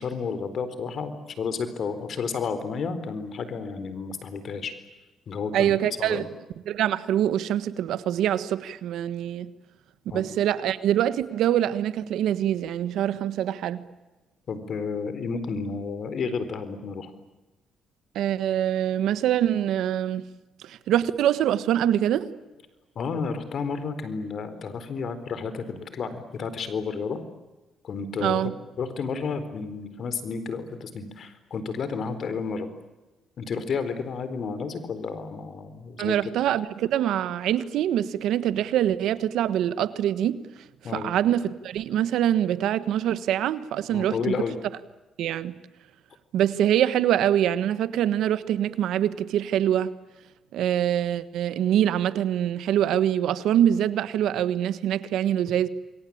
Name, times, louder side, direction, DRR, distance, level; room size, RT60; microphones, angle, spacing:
voice 1, 0.0-4.7 5.3-5.7 6.0-6.3 10.1-10.2 14.5-17.1 23.0-27.2 27.8-28.5 28.8-32.7 33.4-36.2 40.8-41.1 43.9-44.6, left 5 dB, 55° left, 4.1 m, -31 dB
voice 2, 5.5-6.2 6.7-9.5 10.1-13.8 18.1-20.2 20.6-22.3 28.2-28.5 36.0-40.4 40.8-44.4 45.2-45.5 46.3-49.9 50.5-55.7, right 11 dB, 80° right, 1.4 m, -24 dB
28.0 x 23.0 x 8.8 m
cardioid pair, 90°, 0 cm